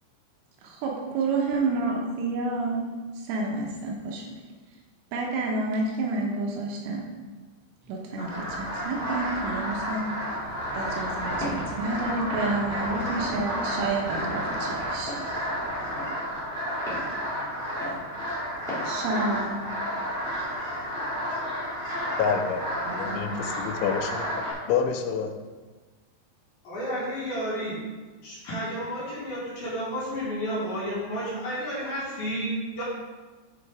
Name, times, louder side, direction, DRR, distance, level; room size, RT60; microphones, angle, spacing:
voice 1, 0.6-2.9 3.3-4.2 5.1-7.0 7.9-10.0 10.7-15.1 18.9-19.6 22.9-23.4, right 3 dB, 80° right, -1 dB, 3.5 m, -29 dB
sound 1, 8.2-24.5, equal, 30° right, 2.7 m, -31 dB
sound 2, 10.1-16.3, right 2 dB, 60° right, 3.2 m, -39 dB
Walk footsteps, 11.4-11.7 12.3-12.5 13.2-13.4 14.1-14.3 15.1-15.3 16.0-16.1 16.9-17.1 17.8-18.0 18.7-18.9, equal, 5° left, 0.3 m, -35 dB
voice 2, 22.2-22.6 22.9-24.3 24.7-25.3, left 6 dB, 80° left, 5 dB, 2.9 m, -27 dB
voice 3, 26.6-27.8 28.2-32.8, equal, 55° left, -8 dB, 3.8 m, -31 dB
9.3 x 5.2 x 4.8 m, 1.3 s
omnidirectional pair, 5.9 m